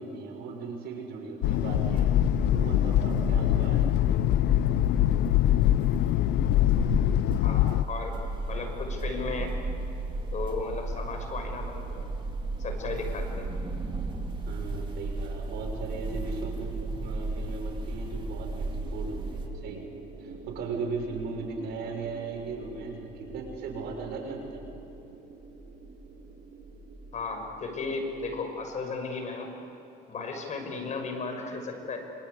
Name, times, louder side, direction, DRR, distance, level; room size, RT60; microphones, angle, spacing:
voice 1, 0.0-2.1 2.5-4.1 14.5-19.8 20.2-24.7, right 4 dB, 80° right, 2 dB, 6.4 m, -37 dB
sound 1, 1.4-7.8, left 16 dB, 75° left, 0.5 m, -24 dB
sound 2, 1.4-19.5, right 2 dB, 30° right, 4.3 m, -34 dB
voice 2, 7.4-8.1 8.5-9.5 10.3-12.1 12.6-13.5 27.1-29.5 30.1-32.0, left 4 dB, 45° left, 4 dB, 6.4 m, -35 dB
sound 3, 18.4-28.9, right 4 dB, 55° right, 4.1 m, -47 dB
27.0 x 26.5 x 8.3 m, 2.8 s
cardioid pair, 110°, 17 cm